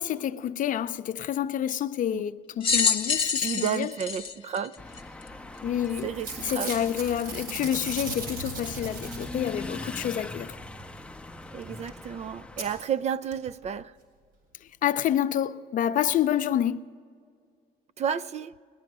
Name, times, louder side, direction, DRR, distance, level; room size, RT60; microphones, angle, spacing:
voice 1, 0.0-3.9 5.6-6.1 6.4-10.6 14.6-16.9, left 10 dB, 50° left, 0.5 m, -28 dB
sound 1, 2.6-5.3 6.0-6.1 7.2-7.3, left 6 dB, 30° left, 0.9 m, -26 dB
voice 2, 3.4-4.7 6.0-6.7 11.5-13.9 18.0-18.5, right 8 dB, 40° right, 0.4 m, -31 dB
sound 2, 4.8-12.8, left 2 dB, 5° left, 0.6 m, -41 dB
Packing tape duct tape / Tearing, 5.6-5.8 6.1-9.7 11.6-11.7 11.9-12.0 12.6-12.7 13.3-13.4 13.6-13.7, right 3 dB, 75° right, 4.0 m, -37 dB
19.0 x 10.5 x 6.0 m
cardioid pair, 110°, 17 cm